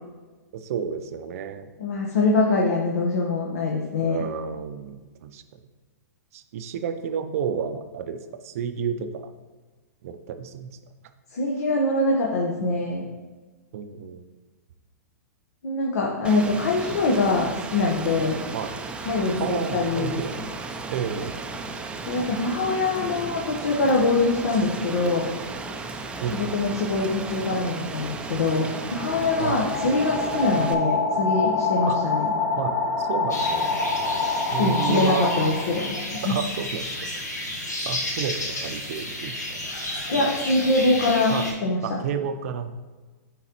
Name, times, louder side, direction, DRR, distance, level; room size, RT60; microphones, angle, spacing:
voice 1, 0.5-1.7 4.0-5.4 6.3-9.3 10.0-10.7 13.7-14.2 18.5-18.8 19.4-20.4 20.9-21.3 22.8-23.4 26.2-26.7 29.4-29.6 31.8-32.0 32.6-33.7 34.3-35.3 36.2-37.1 37.9-39.6 40.1-40.3 41.3-41.5 41.8-42.8, right 7 dB, 55° right, 9 dB, 0.6 m, -31 dB
voice 2, 1.8-4.2 11.3-13.0 15.6-18.4 19.0-20.2 22.0-25.3 26.3-32.3 34.6-36.0 36.2-36.4 40.1-41.4 41.6-41.8, left 3 dB, 70° left, -1 dB, 1.0 m, -23 dB
Rain, 16.2-30.7, right 3 dB, 10° right, 0.5 m, -35 dB
sound 1, 28.2-36.0, left 3 dB, 50° left, 1.4 m, -26 dB
sound 2, 33.3-41.5, left 1 dB, 90° left, 1.3 m, -32 dB
9.9 x 3.9 x 2.9 m, 1.3 s
hypercardioid pair, 115°, 9 cm